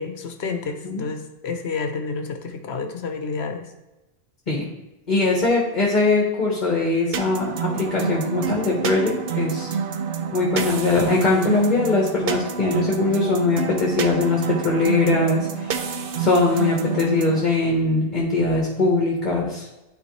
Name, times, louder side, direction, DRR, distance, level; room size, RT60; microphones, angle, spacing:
voice 1, 0.0-3.7, left 4 dB, 80° left, 6 dB, 1.1 m, -30 dB
voice 2, 5.1-9.7 10.3-19.8, left 3 dB, 45° left, -2 dB, 1.3 m, -21 dB
sound 1, 7.1-17.4, right 7 dB, 65° right, 0.8 m, -28 dB
11.0 x 4.5 x 3.2 m, 1.0 s
omnidirectional pair, 1.1 m